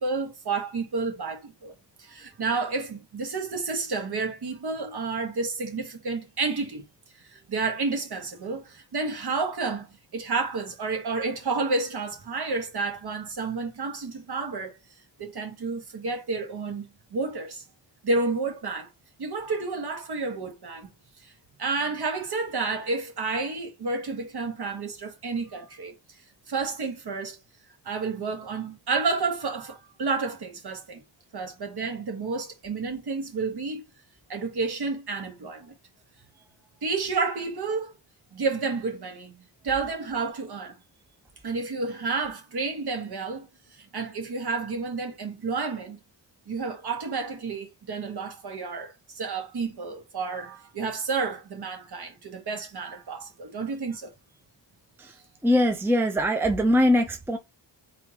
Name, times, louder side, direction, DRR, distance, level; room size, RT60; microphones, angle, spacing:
voice 1, 0.0-1.7 2.0-6.9 7.3-9.9 10.1-14.7 15.2-16.8 17.1-17.6 18.0-18.9 19.2-20.9 21.2-21.3 21.6-25.9 26.5-27.4 27.9-31.0 31.3-33.8 34.3-35.7 36.8-37.9 38.3-39.3 39.6-40.8 41.4-46.0 46.5-54.1, right 4 dB, 60° right, 1.8 m, -30 dB
voice 2, 55.4-57.4, equal, 5° right, 0.7 m, -22 dB
4.4 x 4.1 x 2.9 m
wide cardioid pair, 150°, 43 cm